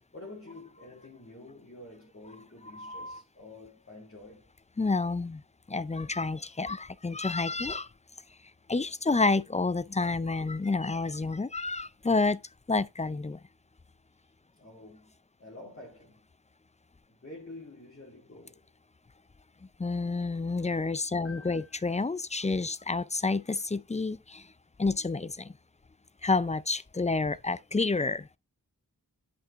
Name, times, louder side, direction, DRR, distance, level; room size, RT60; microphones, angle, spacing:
voice 1, 0.1-4.5 14.2-15.1 15.4-16.3 17.1-18.7 21.1-21.9, left 2 dB, 35° left, 2.2 m, -49 dB
voice 2, 2.7-3.2 4.8-5.4 5.7-7.9 8.7-12.4 12.7-13.4 19.8-24.5 24.8-25.5 26.2-28.3, left 3 dB, 20° left, 0.4 m, -29 dB
9.0 x 5.3 x 3.5 m
wide cardioid pair, 45°, 36 cm